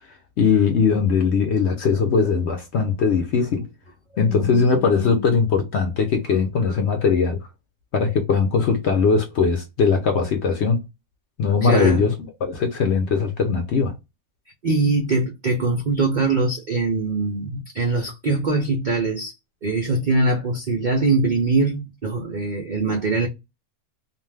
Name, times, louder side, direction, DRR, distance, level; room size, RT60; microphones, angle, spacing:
voice 1, 0.4-3.7 4.2-7.5 7.9-10.8 11.4-12.1 12.4-13.9, left 5 dB, 65° left, 0.7 m, -20 dB
voice 2, 4.2-5.3 11.6-12.1 14.6-19.3 19.6-23.3, right 3 dB, 80° right, 0.4 m, -23 dB
2.5 x 2.2 x 3.2 m
omnidirectional pair, 1.6 m